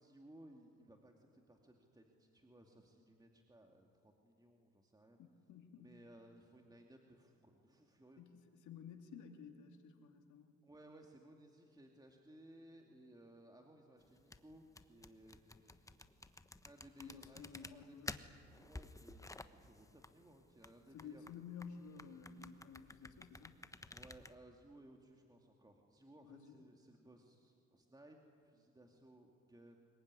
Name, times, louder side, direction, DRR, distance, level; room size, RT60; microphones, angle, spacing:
voice 1, 0.0-5.2 5.8-8.2 10.6-15.8 16.2-18.0 18.4-21.3 23.9-29.8, right 1 dB, 15° right, 2 dB, 2.5 m, -61 dB
voice 2, 5.2-6.0 8.2-10.5 17.0-18.2 20.9-23.6 26.2-26.6, left 6 dB, 75° left, 4 dB, 2.9 m, -53 dB
sound 1, 14.0-24.3, left 2 dB, 10° left, 1.1 m, -53 dB
25.0 x 22.5 x 9.9 m, 2.4 s
cardioid pair, 90°, 30 cm